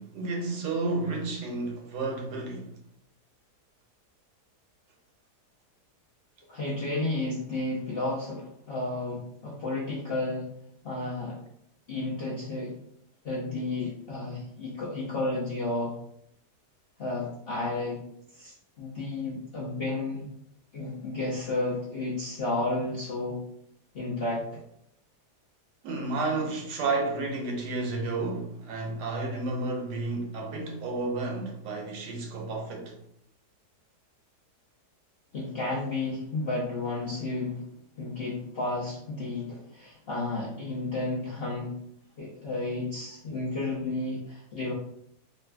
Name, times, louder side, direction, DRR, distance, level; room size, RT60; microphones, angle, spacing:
voice 1, 0.0-2.7 25.8-33.0, right 3 dB, 85° right, 1.3 m, -31 dB
voice 2, 6.5-10.5 10.8-11.4 11.9-12.7 13.2-16.0 17.0-18.0 18.3-20.3 20.7-23.4 23.9-24.6 35.3-37.6 38.0-41.7 42.2-44.7, left 2 dB, 65° left, 0.6 m, -32 dB
4.0 x 2.4 x 2.2 m
omnidirectional pair, 1.8 m